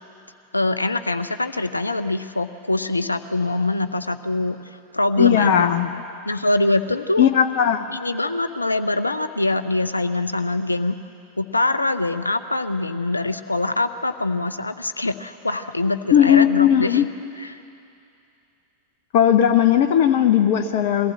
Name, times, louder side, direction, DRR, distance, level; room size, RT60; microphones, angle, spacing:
voice 1, 0.5-4.6 4.9-5.7 6.3-7.3 7.9-11.0 11.4-17.1 17.4-17.6, left 2 dB, 80° left, 10 dB, 0.7 m, -23 dB
voice 2, 5.2-5.9 7.2-7.8 16.1-17.1 19.1-21.1, left 10 dB, 50° left, 8 dB, 0.8 m, -17 dB
21.5 x 15.0 x 8.1 m, 2.6 s
figure-of-eight pair, 90°, 0 cm